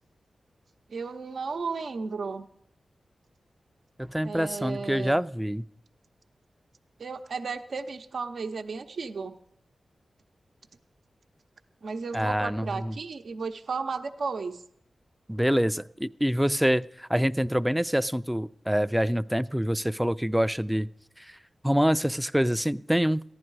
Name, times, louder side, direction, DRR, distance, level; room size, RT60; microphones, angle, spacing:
voice 1, 0.9-2.5 4.2-5.2 7.0-9.4 11.8-14.6, right 4 dB, 75° right, 7 dB, 0.7 m, -34 dB
voice 2, 4.0-5.6 12.1-12.9 15.3-20.9 21.2-21.4 21.6-23.2, equal, 5° right, 15 dB, 0.4 m, -26 dB
14.5 x 11.0 x 4.7 m, 0.71 s
cardioid pair, 55°, 0 cm